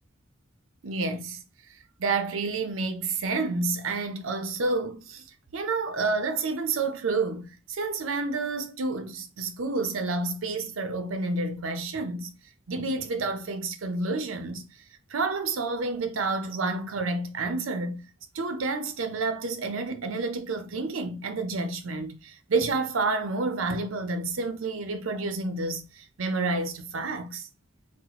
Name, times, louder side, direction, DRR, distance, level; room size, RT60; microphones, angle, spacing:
voice 1, 0.8-1.4 2.0-5.2 5.5-12.3 12.7-14.6 15.1-18.0 18.3-27.5, right 3 dB, 85° right, 0.6 m, -29 dB
4.0 x 2.1 x 2.8 m
head